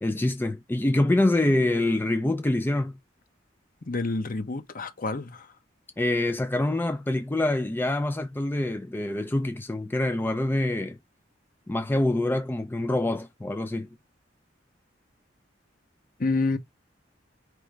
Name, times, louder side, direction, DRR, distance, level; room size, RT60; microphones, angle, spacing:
voice 1, 0.0-3.0 6.0-11.0 11.7-13.9, left 1 dB, 10° left, 0.4 m, -25 dB
voice 2, 3.8-5.5 16.2-16.6, left 3 dB, 45° left, 0.8 m, -28 dB
4.9 x 3.2 x 3.2 m
head